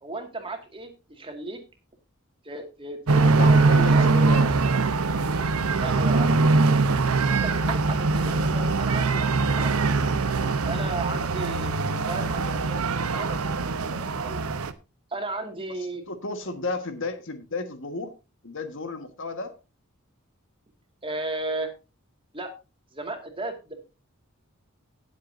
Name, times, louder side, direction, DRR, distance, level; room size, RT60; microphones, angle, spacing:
voice 1, 0.0-1.6 2.4-4.1 5.7-6.4 7.1-10.0 10.7-14.4 15.1-16.0 16.5-16.6 21.0-21.7 22.3-22.5 22.9-23.8, right 2 dB, 25° right, 5 dB, 2.1 m, -35 dB
sound 1, 3.1-14.7, right 3 dB, 80° right, 0.9 m, -22 dB
voice 2, 3.2-4.5 5.1-5.3 7.2-7.4 16.1-18.1 18.4-19.5, left 3 dB, 60° left, 8 dB, 1.6 m, -33 dB
18.0 x 7.6 x 2.7 m, 0.29 s
head